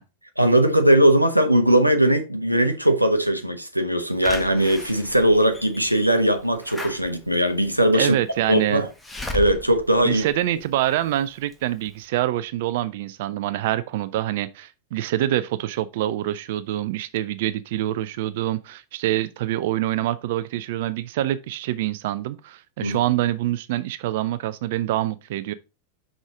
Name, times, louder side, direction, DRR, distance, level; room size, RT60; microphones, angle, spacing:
voice 1, 0.4-8.2 8.5-8.9 9.3-10.2 22.8-23.0, right 1 dB, 90° right, 0.7 m, -19 dB
Slam / Alarm, 4.2-11.0 11.5-11.6 11.9-12.0, left 3 dB, 10° left, 1.1 m, -37 dB
voice 2, 7.9-8.8 10.0-25.5, right 13 dB, 50° right, 0.4 m, -25 dB
6.2 x 5.0 x 3.7 m
figure-of-eight pair, 90°, 0 cm